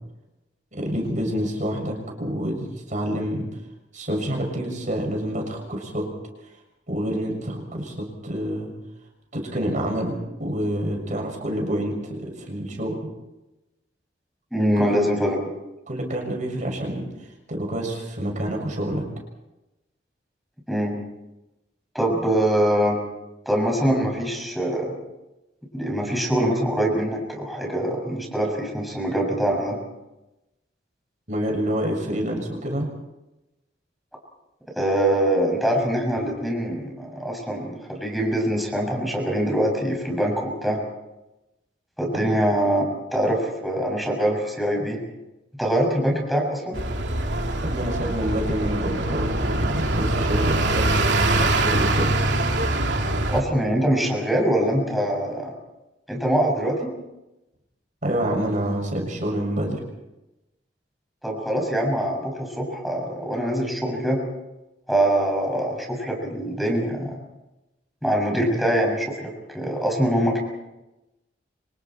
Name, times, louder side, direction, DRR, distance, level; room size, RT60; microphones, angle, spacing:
voice 1, 0.7-3.5 3.9-6.1 6.9-8.7 9.3-13.1 14.8-14.9 15.9-17.1 17.5-19.1 31.3-32.9 42.1-42.3 47.6-51.0 51.3-52.1 58.0-59.8, equal, 45° right, 1 dB, 6.7 m, -27 dB
voice 2, 14.5-15.4 20.7-20.9 21.9-23.0 23.4-24.9 25.7-29.8 34.7-40.8 42.0-42.8 43.1-45.0 45.6-46.8 53.3-55.5 56.1-56.9 61.2-64.2 64.9-67.2 68.0-70.4, right 1 dB, ahead, -1 dB, 6.8 m, -23 dB
sound 1, 46.7-53.4, right 2 dB, 75° right, 3.0 m, -23 dB
30.0 x 26.5 x 4.5 m, 0.96 s
head